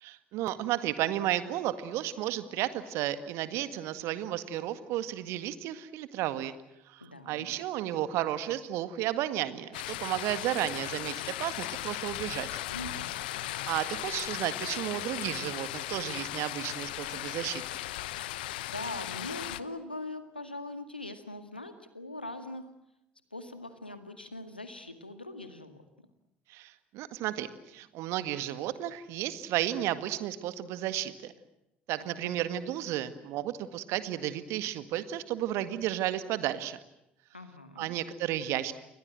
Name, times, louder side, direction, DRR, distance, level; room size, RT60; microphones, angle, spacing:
voice 1, 0.0-6.6 6.9-12.6 13.6-17.6 26.5-31.3 31.9-36.8 37.8-38.7, right 13 dB, 60° right, 13 dB, 1.8 m, -33 dB
voice 2, 7.0-7.5 12.7-13.1 18.6-22.7 23.3-25.8 32.0-32.3 37.3-37.9, left 2 dB, 90° left, 9 dB, 2.0 m, -41 dB
sound 1, 9.7-19.6, left 15 dB, 70° left, 0.9 m, -37 dB
29.5 x 22.5 x 7.8 m, 0.87 s
figure-of-eight pair, 55°, 5 cm